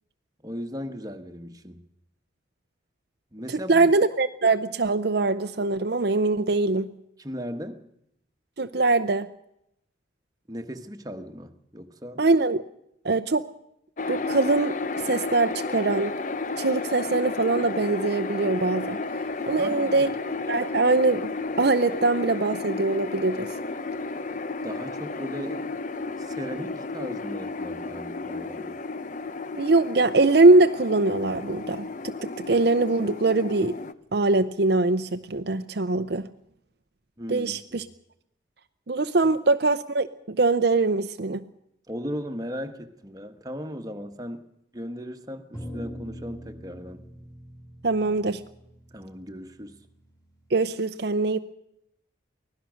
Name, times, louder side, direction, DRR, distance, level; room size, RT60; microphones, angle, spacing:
voice 1, 0.4-1.8 3.3-3.9 7.2-7.9 10.5-12.2 19.6-20.1 24.6-25.7 26.2-28.8 37.2-37.8 41.9-47.0 48.9-49.8, equal, 20° right, 6 dB, 1.4 m, -37 dB
voice 2, 3.5-6.9 8.6-9.3 12.2-12.6 13.0-13.5 14.1-14.8 15.0-16.1 16.6-19.0 19.5-20.1 20.5-21.3 21.6-23.5 29.5-33.8 34.1-36.3 37.3-37.8 38.9-41.4 47.8-48.4 50.5-51.4, right 3 dB, 55° right, 10 dB, 0.7 m, -22 dB
sound 1, 14.0-33.9, left 3 dB, 40° left, 0.7 m, -33 dB
sound 2, 45.5-50.0, equal, 20° left, 5.3 m, -43 dB
24.0 x 17.0 x 6.4 m, 0.78 s
head